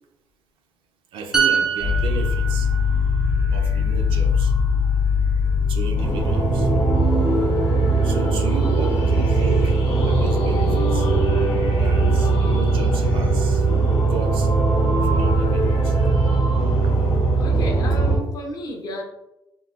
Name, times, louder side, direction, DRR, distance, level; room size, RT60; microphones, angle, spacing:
voice 1, 1.1-2.7 3.5-4.5 5.7-6.7 8.0-9.8 10.1-11.1 11.7-14.5 15.0-16.0 16.8-16.9, right 4 dB, 80° right, 3 dB, 0.5 m, -34 dB
sound 1, 1.3-4.9 5.3-5.5, right 6 dB, 10° right, 0.3 m, -26 dB
sound 2, 1.8-18.2, right 1 dB, 90° left, 0.7 m, -19 dB
voice 2, 17.4-19.0, left 1 dB, 50° left, 1 dB, 0.6 m, -32 dB
3.6 x 2.0 x 2.4 m, 0.88 s
cardioid pair, 150°, 9 cm